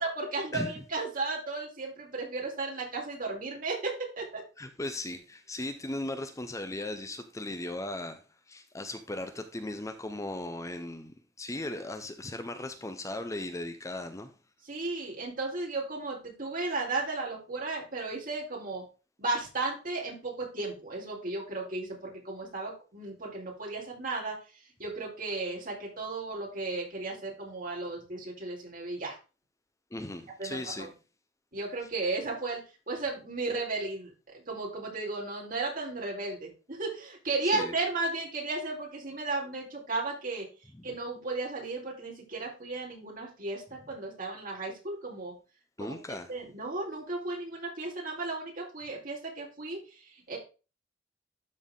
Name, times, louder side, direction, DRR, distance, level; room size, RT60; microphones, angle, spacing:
voice 1, 0.0-4.4 14.6-18.8 19.2-24.4 24.8-29.2 30.4-30.9 31.5-32.6 32.9-40.5 40.8-45.3 45.8-45.9 46.3-50.4, right 3 dB, 50° right, 4.0 m, -34 dB
voice 2, 4.6-8.2 8.5-14.3 29.9-30.9 37.5-37.8 40.7-40.8 45.8-46.3, left 1 dB, 15° left, 0.7 m, -37 dB
12.5 x 4.3 x 3.7 m
head